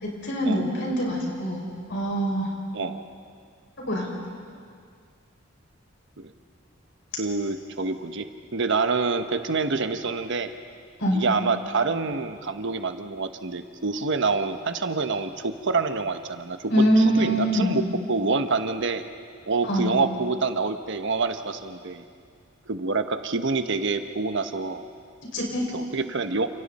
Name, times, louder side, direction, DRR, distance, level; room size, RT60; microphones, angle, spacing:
voice 1, 0.0-2.5 3.9-4.1 11.0-11.2 16.7-17.8 19.6-20.0 25.3-25.6, equal, 65° left, -2 dB, 6.2 m, -24 dB
voice 2, 7.2-8.3 8.5-10.5 11.1-16.7 17.0-17.8 18.1-19.0 19.5-22.0 22.7-24.8 25.7-26.5, right 4 dB, 65° right, 8 dB, 1.1 m, -27 dB
29.5 x 28.0 x 4.3 m, 2.1 s
head